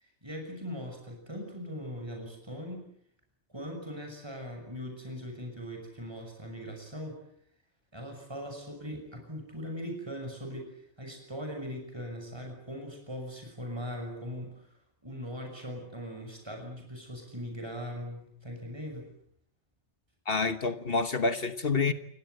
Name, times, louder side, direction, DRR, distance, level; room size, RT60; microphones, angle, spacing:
voice 1, 0.2-2.9 3.5-7.2 7.9-14.7 15.0-19.1, equal, 20° right, 6.3 m, -40 dB
voice 2, 20.3-21.9, left 4 dB, 55° left, 1.5 m, -28 dB
28.5 x 21.0 x 8.0 m
omnidirectional pair, 1.2 m